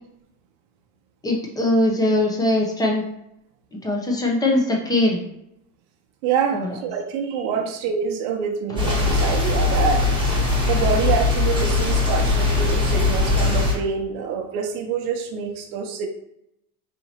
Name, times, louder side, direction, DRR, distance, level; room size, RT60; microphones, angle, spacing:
voice 1, 1.2-3.0 3.8-5.2 6.5-6.8, left 1 dB, 10° left, -1 dB, 0.7 m, -21 dB
voice 2, 6.2-10.2 10.7-16.1, right 6 dB, 75° right, 4 dB, 0.7 m, -26 dB
sound 1, 8.8-13.7, left 3 dB, 10° right, 1.4 m, -20 dB
4.2 x 2.8 x 2.9 m, 0.80 s
supercardioid pair, 120°, 42 cm